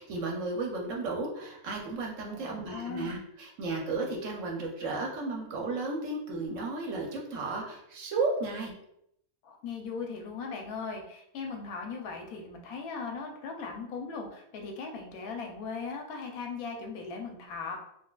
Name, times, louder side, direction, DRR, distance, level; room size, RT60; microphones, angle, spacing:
voice 1, 0.0-8.7, right 3 dB, 65° right, 0 dB, 0.9 m, -34 dB
voice 2, 2.3-3.1 9.4-17.8, left 5 dB, 80° left, 2 dB, 1.1 m, -38 dB
3.9 x 2.4 x 2.2 m, 0.77 s
omnidirectional pair, 1.5 m